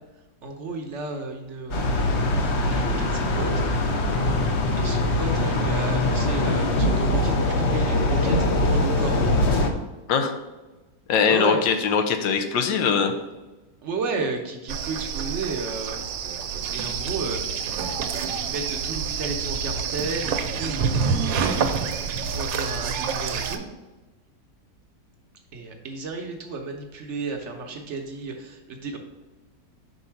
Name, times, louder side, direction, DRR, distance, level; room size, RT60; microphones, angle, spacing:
voice 1, 0.4-2.1 2.6-3.5 4.8-9.2 11.3-11.6 13.8-16.0 16.7-17.8 18.4-21.7 22.2-23.6 25.5-29.0, right 3 dB, 55° right, 3 dB, 0.8 m, -33 dB
sound 1, 1.7-9.7, left 2 dB, 60° left, 0.7 m, -22 dB
voice 2, 11.1-13.1, left 6 dB, 85° left, 6 dB, 1.4 m, -21 dB
sound 2, 14.7-23.6, right 6 dB, 85° right, 1.3 m, -27 dB
5.3 x 3.9 x 5.7 m, 1.1 s
omnidirectional pair, 2.0 m